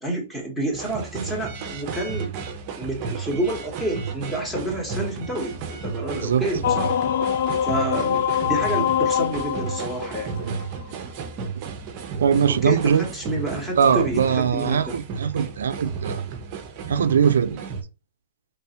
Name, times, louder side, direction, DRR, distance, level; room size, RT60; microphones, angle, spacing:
voice 1, 0.0-2.3 2.8-7.0 7.6-10.4 12.5-15.0, right 1 dB, 5° left, 1.0 m, -29 dB
sound 1, 0.7-17.8, right 6 dB, 30° right, 0.6 m, -33 dB
voice 2, 6.1-6.5 10.4-10.6 11.6-11.7 12.2-13.0 13.8-16.2 16.9-17.6, right 7 dB, 90° right, 0.4 m, -21 dB
sound 2, 6.6-10.9, left 9 dB, 55° left, 0.3 m, -24 dB
3.4 x 3.2 x 2.8 m
hypercardioid pair, 165°, 0 cm